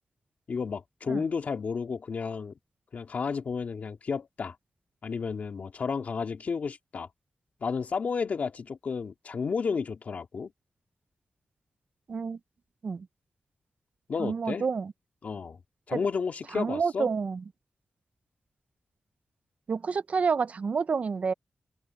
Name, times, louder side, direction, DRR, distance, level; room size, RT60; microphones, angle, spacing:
voice 1, 0.5-2.5 2.9-4.5 5.0-7.1 7.6-10.5 14.1-14.7 15.2-15.6 15.9-17.1, left 5 dB, 60° left, 2.6 m, -32 dB
voice 2, 14.2-14.9 15.9-16.0 16.5-17.4 19.7-21.3, right 5 dB, 55° right, 0.5 m, -29 dB
wide cardioid pair, 135°, 3 cm